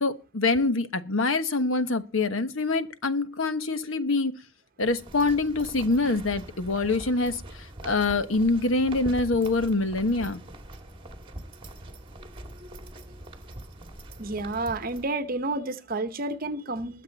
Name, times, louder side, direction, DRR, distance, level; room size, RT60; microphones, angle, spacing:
voice 1, 0.0-4.3 4.8-10.4, left 3 dB, 80° left, 1.1 m, -25 dB
sound 1, 4.8-15.0, right 1 dB, 25° right, 1.9 m, -43 dB
voice 2, 14.2-17.0, right 2 dB, 45° right, 1.0 m, -30 dB
21.0 x 7.5 x 4.1 m
head